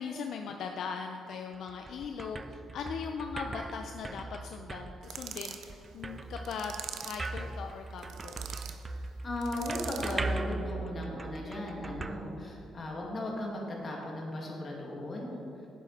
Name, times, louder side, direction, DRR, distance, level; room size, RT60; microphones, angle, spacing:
voice 1, 0.0-8.7, left 5 dB, 70° left, 4 dB, 0.5 m, -39 dB
sound 1, 1.5-13.0, right 3 dB, 25° right, 0.4 m, -40 dB
sound 2, 5.0-5.7 6.4-7.3 8.0-8.8 9.4-10.2, right 8 dB, 75° right, 0.6 m, -42 dB
voice 2, 9.2-15.3, left 1 dB, 40° left, -2 dB, 2.2 m, -36 dB
10.0 x 7.5 x 4.2 m, 2.6 s
cardioid pair, 90°, 0 cm